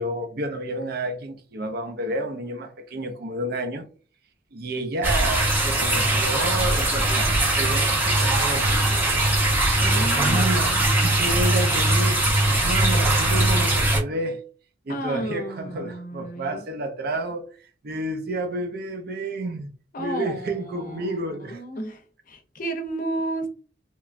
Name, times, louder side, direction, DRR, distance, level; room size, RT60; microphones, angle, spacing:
voice 1, 0.0-3.9 4.5-9.3 9.9-12.2 12.6-14.4 14.9-17.5 17.8-19.7 20.0-21.6, right 1 dB, 60° right, 0.5 m, -30 dB
sound 1, 5.0-14.0, right 1 dB, 10° right, 0.6 m, -21 dB
voice 2, 9.8-10.8 14.9-16.6 19.9-23.5, right 1 dB, 50° left, 0.6 m, -32 dB
2.9 x 2.2 x 2.4 m
head